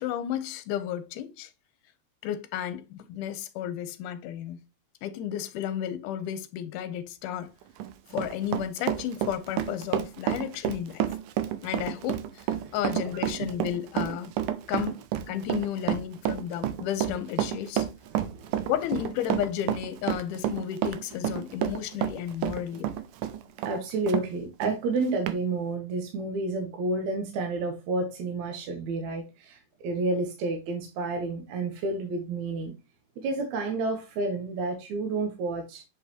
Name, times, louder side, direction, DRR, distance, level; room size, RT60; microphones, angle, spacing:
voice 1, 0.0-1.5 2.2-4.6 5.0-7.5 8.1-11.1 11.6-12.4 12.7-14.4 14.7-15.0 15.3-17.9 18.7-22.9, left 10 dB, 80° left, 2.2 m, -32 dB
Run, 7.6-24.3 24.6-24.7 25.3-25.4, right 11 dB, 85° right, 2.3 m, -30 dB
voice 2, 18.1-18.7 23.6-32.7 33.2-35.8, right 3 dB, 70° right, 2.1 m, -30 dB
7.7 x 4.6 x 2.9 m
omnidirectional pair, 3.7 m